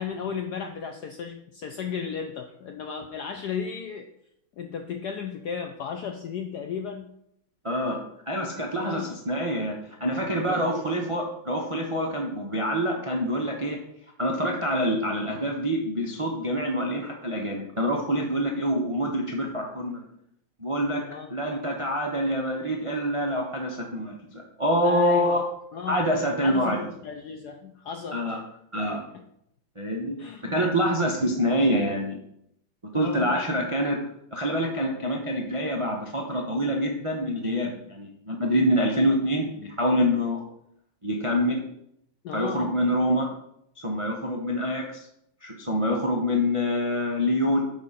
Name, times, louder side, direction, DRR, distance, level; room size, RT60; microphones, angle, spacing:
voice 1, 0.0-4.1 4.6-7.1 8.8-9.1 10.5-10.9 21.0-21.3 24.8-25.4 25.7-26.0 26.4-28.2 30.2-30.6 32.9-33.4 42.2-42.7, left 7 dB, 75° left, 5 dB, 0.9 m, -34 dB
voice 2, 7.6-8.0 8.3-13.8 14.2-20.0 20.6-21.0 21.3-25.4 25.9-26.8 28.1-28.4 28.7-29.0 29.8-30.2 30.4-32.2 32.9-34.0 34.3-40.4 41.0-41.6 42.3-43.3 43.8-45.0 45.4-47.6, equal, 55° right, 0 dB, 0.3 m, -26 dB
8.6 x 3.8 x 5.6 m, 0.75 s
omnidirectional pair, 2.3 m